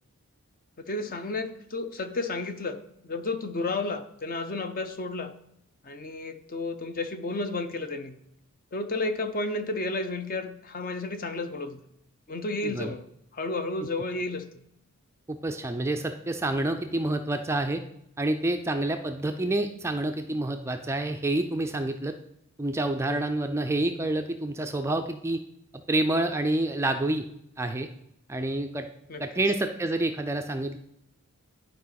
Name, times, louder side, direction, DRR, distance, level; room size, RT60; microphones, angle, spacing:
voice 1, 0.8-2.8 3.0-5.3 5.8-8.2 8.7-11.8 12.3-13.0 13.3-14.5 23.1-23.2 29.1-29.2, left 2 dB, 40° left, 9 dB, 0.6 m, -32 dB
voice 2, 12.6-12.9 15.3-17.8 18.2-22.1 22.6-25.4 25.9-27.2 27.6-27.9 28.3-28.9 29.2-30.8, right 2 dB, 10° right, 6 dB, 0.3 m, -28 dB
11.0 x 4.8 x 4.0 m, 0.77 s
head